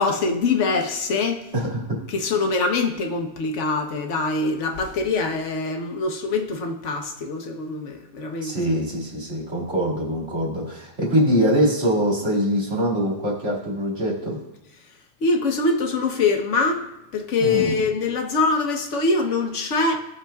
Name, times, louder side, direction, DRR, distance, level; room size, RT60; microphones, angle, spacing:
voice 1, 0.0-1.4 2.1-8.5 15.2-16.8 17.1-20.0, left 3 dB, 85° left, 4 dB, 1.2 m, -23 dB
voice 2, 1.5-2.0 8.4-14.4 17.4-17.7, equal, 75° right, -5 dB, 2.6 m, -23 dB
17.0 x 6.0 x 2.3 m, 0.96 s
omnidirectional pair, 1.2 m